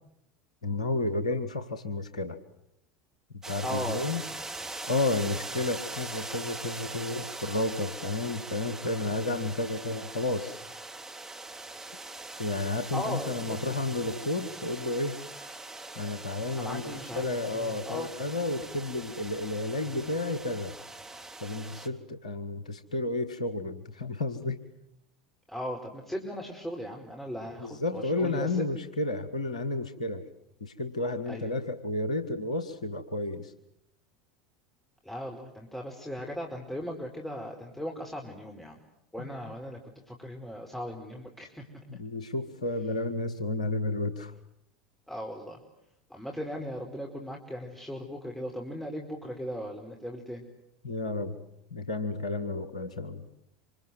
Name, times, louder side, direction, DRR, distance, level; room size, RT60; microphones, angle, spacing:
voice 1, 0.6-2.4 3.5-4.2 4.8-10.6 12.4-15.2 16.0-20.8 21.4-24.6 27.6-30.3 30.6-33.5 39.2-39.3 41.9-44.3 50.8-51.4 51.7-53.2, left 2 dB, 80° left, 10 dB, 1.7 m, -31 dB
sound 1, 3.4-21.9, right 2 dB, 15° right, 3.5 m, -42 dB
voice 2, 3.6-4.1 12.9-13.7 16.6-17.3 17.5-18.1 25.5-28.6 31.3-31.5 35.0-38.8 39.1-41.6 45.1-45.6 46.1-50.4, equal, 5° left, 0 dB, 4.9 m, -38 dB
27.0 x 26.5 x 8.0 m, 0.78 s
figure-of-eight pair, 75°, 4 cm